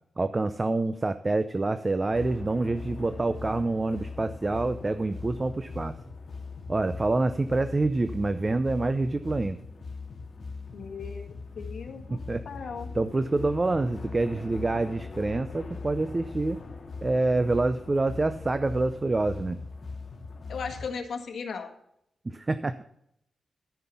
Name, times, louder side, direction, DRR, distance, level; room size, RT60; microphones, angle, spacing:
voice 1, 0.2-5.9 6.7-9.6 12.1-12.4 12.9-16.6 17.0-19.6 22.3-22.8, right 2 dB, 25° right, 11 dB, 0.5 m, -27 dB
sound 1, 2.1-20.9, left 4 dB, 45° left, 1.9 m, -40 dB
voice 2, 10.7-12.2 12.4-12.9 20.5-21.7, left 5 dB, 75° left, 4 dB, 1.7 m, -37 dB
13.5 x 5.7 x 7.0 m, 0.74 s
wide cardioid pair, 140°, 0 cm